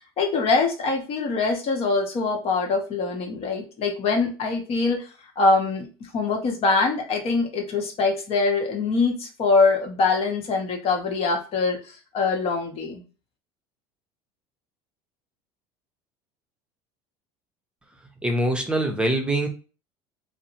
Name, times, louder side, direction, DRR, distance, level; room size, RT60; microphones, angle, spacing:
voice 1, 0.2-5.1 5.4-5.9 6.1-13.0, left 3 dB, 50° left, 2 dB, 0.9 m, -23 dB
voice 2, 18.2-19.5, right 1 dB, 5° right, 3 dB, 0.7 m, -23 dB
2.6 x 2.1 x 2.8 m, 0.34 s
supercardioid pair, 85°, 13 cm